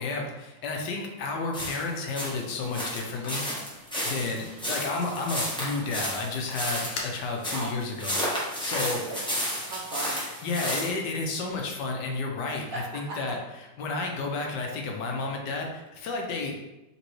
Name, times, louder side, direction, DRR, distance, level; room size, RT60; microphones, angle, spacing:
voice 1, 0.0-3.4 4.0-9.0 10.4-13.4 13.8-16.5, left 3 dB, 75° left, 1 dB, 1.3 m, -31 dB
sound 1, 1.5-10.9, equal, 5° left, 0.8 m, -32 dB
sound 2, 2.5-7.7, left 2 dB, 60° left, 0.7 m, -45 dB
voice 2, 4.0-4.4 7.5-7.7 8.7-10.2 12.6-12.8 13.1-13.2, right 2 dB, 60° right, -4 dB, 1.0 m, -38 dB
4.0 x 3.7 x 3.0 m, 1.0 s
omnidirectional pair, 2.0 m